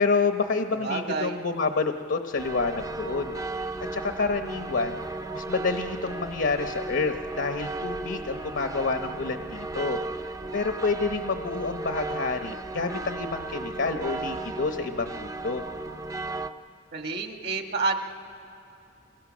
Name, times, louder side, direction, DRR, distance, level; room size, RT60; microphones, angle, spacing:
voice 1, 0.0-3.4 3.9-5.0 5.3-15.6, left 4 dB, 65° left, 6 dB, 0.8 m, -28 dB
voice 2, 0.8-1.4 16.9-18.0, right 4 dB, 55° right, 5 dB, 1.4 m, -29 dB
sound 1, 2.4-16.5, right 2 dB, 15° right, 0.5 m, -35 dB
27.0 x 25.0 x 6.2 m, 2.7 s
head